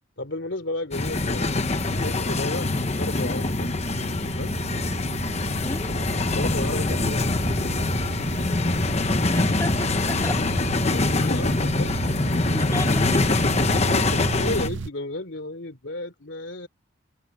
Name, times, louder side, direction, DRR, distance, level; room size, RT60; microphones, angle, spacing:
voice 1, 0.2-1.5 1.9-2.7 3.0-3.8 4.2-4.5 6.3-7.3 10.8-12.0 13.8-16.7, left 2 dB, 65° left, 3.5 m, -33 dB
sound 1, 0.9-14.7, left 2 dB, 30° left, 1.0 m, -24 dB
sound 2, 1.0-14.9, right 4 dB, 60° right, 0.6 m, -35 dB
voice 2, 9.3-10.4 12.5-13.3, left 1 dB, 15° left, 1.8 m, -33 dB
head